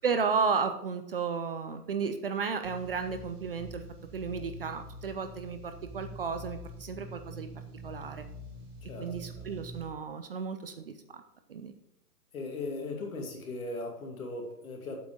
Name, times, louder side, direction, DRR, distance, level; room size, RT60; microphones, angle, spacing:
voice 1, 0.0-3.8 4.1-7.5 7.8-8.2 9.0-11.2 11.5-11.7, right 5 dB, 40° right, 8 dB, 0.5 m, -33 dB
sound 1, 2.6-9.9, equal, 15° right, 0.8 m, -45 dB
voice 2, 8.9-9.5 12.3-15.0, left 2 dB, 60° left, 1 dB, 2.6 m, -38 dB
7.8 x 6.0 x 5.0 m, 0.80 s
hypercardioid pair, 145°, 47 cm